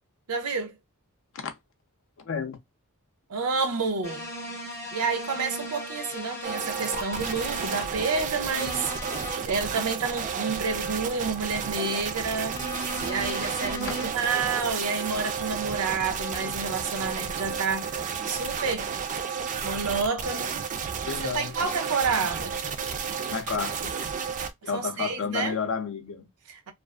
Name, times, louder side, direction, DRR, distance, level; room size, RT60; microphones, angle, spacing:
voice 1, 0.3-0.8 3.3-4.3 4.9-8.9 9.4-18.9 19.6-20.6 21.2-22.6 24.6-25.6 26.5-26.7, right 4 dB, 80° right, 0.6 m, -29 dB
voice 2, 2.2-2.6 13.9-14.0 21.0-21.7 23.3-23.9 24.6-26.3, left 5 dB, 60° left, 0.5 m, -31 dB
sound 1, 4.0-7.9 8.5-9.4 12.5-14.1, left 1 dB, 10° left, 0.6 m, -37 dB
sound 2, 6.4-24.5, right 6 dB, 35° right, 0.3 m, -32 dB
2.5 x 2.4 x 2.2 m
head